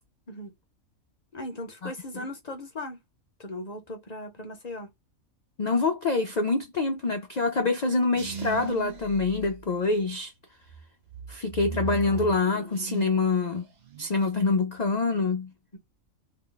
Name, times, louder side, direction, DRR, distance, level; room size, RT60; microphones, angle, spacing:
voice 1, 1.3-3.0 3.4-4.9 15.7-15.8, left 1 dB, 35° left, 0.7 m, -38 dB
voice 2, 5.6-10.3 11.3-13.6 14.0-15.5, left 3 dB, 85° left, 0.3 m, -25 dB
sound 1, 8.1-10.2 10.6-13.2 13.5-14.1, right 6 dB, 85° right, 0.4 m, -38 dB
2.8 x 2.2 x 3.8 m
omnidirectional pair, 1.5 m